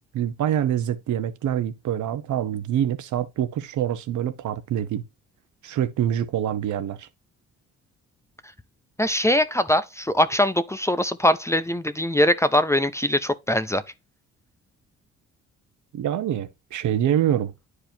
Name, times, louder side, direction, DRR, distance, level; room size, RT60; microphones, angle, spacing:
voice 1, 0.1-5.0 5.6-7.1 15.9-17.5, right 10 dB, 75° right, 1.1 m, -25 dB
voice 2, 9.0-13.8, left 1 dB, 10° left, 0.6 m, -22 dB
9.9 x 4.8 x 2.8 m
cardioid pair, 90°, 30 cm